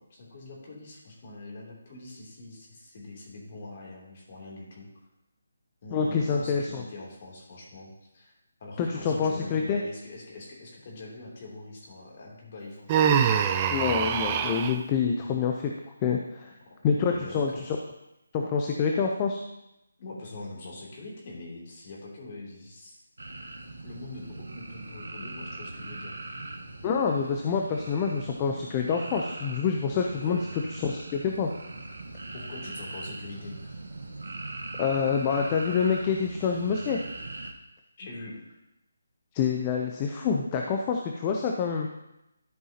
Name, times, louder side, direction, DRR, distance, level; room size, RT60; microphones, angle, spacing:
voice 1, 0.0-4.9 5.8-8.3 8.6-13.1 15.2-15.4 17.0-17.7 20.0-23.0 23.8-26.2 30.1-30.4 32.3-33.8 38.0-38.6, left 2 dB, 40° left, -3 dB, 3.0 m, -43 dB
voice 2, 5.9-6.8 8.8-9.8 13.7-15.7 16.0-16.5 16.8-17.8 18.3-19.4 26.8-30.4 30.7-31.5 34.8-37.0 39.3-41.9, left 6 dB, 25° left, 1 dB, 0.6 m, -27 dB
Human voice, 12.9-14.8, right 8 dB, 25° right, 0.5 m, -24 dB
sound 1, 23.2-37.5, right 2 dB, 80° right, 1.4 m, -40 dB
12.5 x 5.4 x 2.9 m, 0.89 s
figure-of-eight pair, 155°, 0 cm